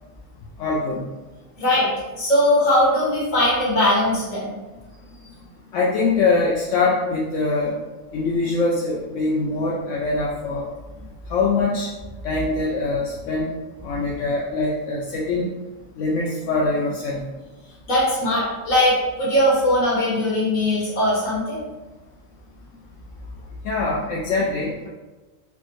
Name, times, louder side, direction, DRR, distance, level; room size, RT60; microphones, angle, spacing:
voice 1, 0.6-1.1 5.7-7.7 8.1-10.7 11.3-11.9 12.2-13.5 13.8-15.5 16.0-17.3 23.6-24.9, left 3 dB, 75° left, -4 dB, 0.9 m, -23 dB
voice 2, 1.6-1.9 2.2-4.5 13.9-14.0 17.9-21.6, left 1 dB, 90° left, -8 dB, 1.9 m, -20 dB
4.9 x 2.1 x 3.0 m, 1.2 s
omnidirectional pair, 1.3 m